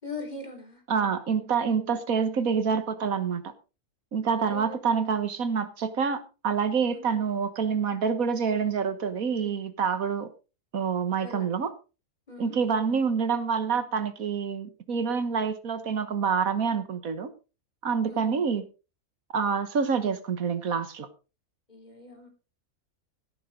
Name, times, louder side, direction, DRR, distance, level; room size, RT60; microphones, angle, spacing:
voice 1, 0.0-0.8 4.4-5.0 6.9-7.1 11.2-11.5 12.3-12.6 18.1-18.3 21.7-22.3, left 3 dB, 30° left, 5 dB, 4.3 m, -41 dB
voice 2, 0.9-3.4 4.1-10.3 10.7-11.7 12.4-17.3 17.8-18.6 19.3-21.1, right 6 dB, 70° right, 11 dB, 1.7 m, -27 dB
16.5 x 9.5 x 3.8 m, 0.33 s
omnidirectional pair, 1.5 m